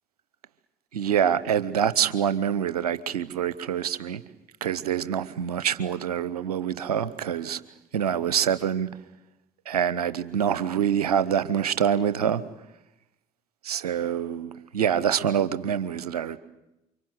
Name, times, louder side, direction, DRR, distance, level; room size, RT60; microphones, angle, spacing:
voice 1, 0.9-4.2 4.6-7.6 7.9-8.9 9.7-12.4 13.6-16.4, right 8 dB, 85° right, 1.0 m, -25 dB
29.0 x 25.0 x 7.9 m
figure-of-eight pair, 50°, 19 cm